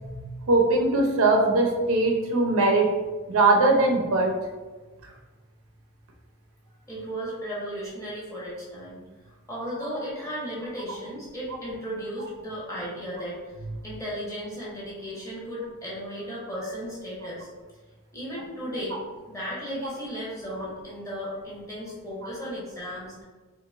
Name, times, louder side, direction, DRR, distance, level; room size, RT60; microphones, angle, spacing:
voice 1, 0.0-2.9 3.3-4.3 12.2-12.3 22.2-22.3, right 2 dB, 65° right, 1 dB, 0.5 m, -21 dB
voice 2, 6.9-9.0 9.2-13.4 13.8-17.5 18.1-19.0 19.3-23.2, equal, 15° left, -7 dB, 0.9 m, -35 dB
3.9 x 2.5 x 2.4 m, 1.3 s
head